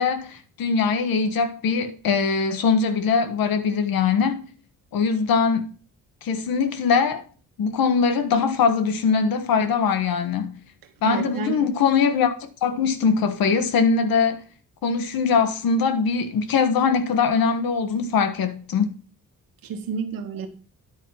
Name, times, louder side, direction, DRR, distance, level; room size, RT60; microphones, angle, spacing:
voice 1, 0.0-4.4 4.9-5.7 6.2-7.2 7.6-10.5 11.0-14.4 14.8-18.9, left 5 dB, 90° left, 1.3 m, -22 dB
voice 2, 11.0-11.7 19.6-20.5, right 6 dB, 80° right, 1.3 m, -30 dB
10.0 x 4.5 x 5.5 m
cardioid pair, 120°, 34 cm